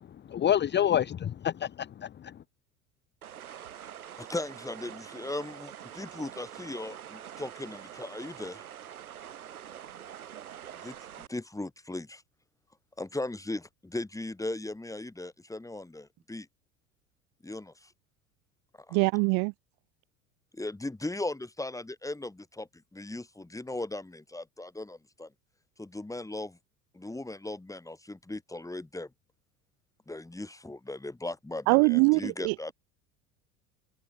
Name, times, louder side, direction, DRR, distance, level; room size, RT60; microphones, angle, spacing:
voice 1, 0.3-2.3, left 10 dB, 25° left, 0.9 m, -27 dB
sound 1, 3.2-11.3, right 10 dB, 80° right, 4.0 m, -45 dB
voice 2, 4.2-8.7 10.8-12.2 13.0-16.5 17.4-17.9 18.8-19.0 20.5-25.3 25.8-26.6 26.9-29.1 30.1-32.7, left 2 dB, 5° left, 3.2 m, -38 dB
voice 3, 18.9-19.5 31.7-32.7, right 37 dB, 45° right, 0.4 m, -23 dB
figure-of-eight pair, 75°, 43 cm